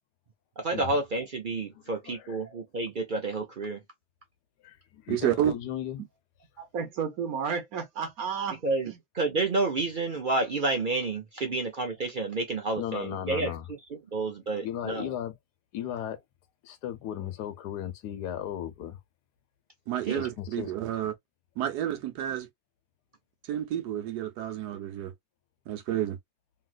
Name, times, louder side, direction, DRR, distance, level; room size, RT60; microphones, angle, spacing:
voice 1, 0.6-3.8 8.6-13.5 13.9-15.1 20.1-20.2, right 3 dB, 50° right, 0.6 m, -30 dB
voice 2, 1.7-2.4 4.6-6.0 6.5-6.6 12.8-13.7 14.5-15.3 15.7-16.2 16.6-19.0 20.1-21.0, left 11 dB, 90° left, 1.3 m, -36 dB
voice 3, 5.1-5.5 19.9-21.1 21.6-22.5 23.5-25.1 25.7-26.2, right 11 dB, 85° right, 1.3 m, -30 dB
voice 4, 6.6-8.6, right 6 dB, 65° right, 1.2 m, -32 dB
3.1 x 2.8 x 2.4 m
omnidirectional pair, 1.7 m